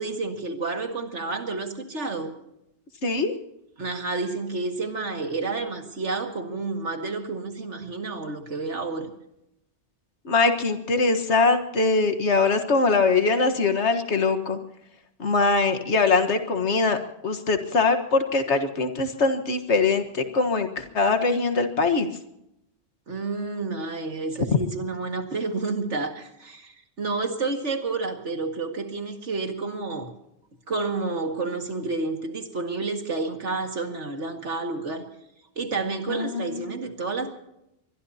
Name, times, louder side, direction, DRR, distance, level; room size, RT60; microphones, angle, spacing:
voice 1, 0.0-2.3 3.8-9.1 23.1-30.1 30.7-35.1 35.6-37.3, right 3 dB, 90° right, 4 dB, 2.3 m, -30 dB
voice 2, 3.0-3.3 10.3-14.6 15.2-17.0 17.2-22.1 36.1-36.8, left 3 dB, 75° left, 7 dB, 1.8 m, -22 dB
23.5 x 21.5 x 2.8 m, 0.83 s
omnidirectional pair, 1.2 m